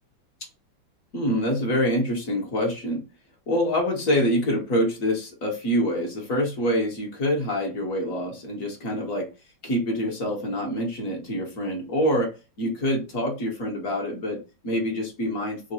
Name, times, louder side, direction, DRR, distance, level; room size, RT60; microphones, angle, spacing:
voice 1, 1.1-3.0 3.5-9.3 9.6-15.7, equal, 50° left, 1.2 m, -26 dB
3.7 x 2.3 x 4.1 m
omnidirectional pair, 2.2 m